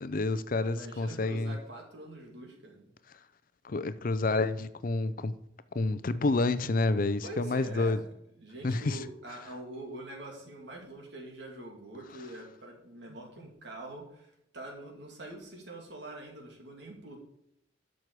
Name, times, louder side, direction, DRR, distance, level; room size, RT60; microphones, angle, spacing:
voice 1, 0.0-1.5 3.6-5.4 5.7-8.0 8.6-9.0, left 3 dB, 45° left, 0.5 m, -29 dB
voice 2, 0.7-2.9 7.2-8.1 8.4-17.3, right 2 dB, 65° right, 2.7 m, -44 dB
12.5 x 6.3 x 4.7 m
head